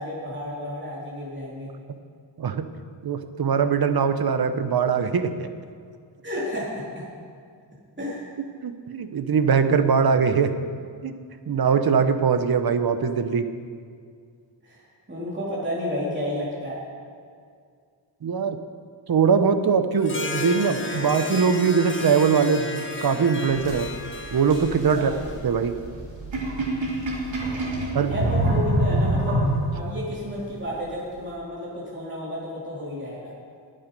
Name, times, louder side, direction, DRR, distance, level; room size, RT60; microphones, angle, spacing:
voice 1, 0.0-1.7 6.2-7.1 8.0-8.2 14.6-16.8 24.9-25.2 28.1-29.4 29.7-33.3, left 1 dB, 25° right, -6 dB, 3.1 m, -31 dB
voice 2, 3.0-5.5 8.6-10.5 11.0-11.1 11.5-13.5 18.2-18.6 19.1-23.9 24.3-25.1 25.4-25.7 27.9-28.1, right 6 dB, 55° right, 9 dB, 0.9 m, -21 dB
Harp, 20.0-25.7, left 3 dB, 25° left, 1.2 m, -33 dB
sound 1, 23.5-30.0, right 1 dB, 80° right, 3.0 m, -26 dB
20.5 x 7.8 x 5.3 m, 2.2 s
wide cardioid pair, 135°, 45 cm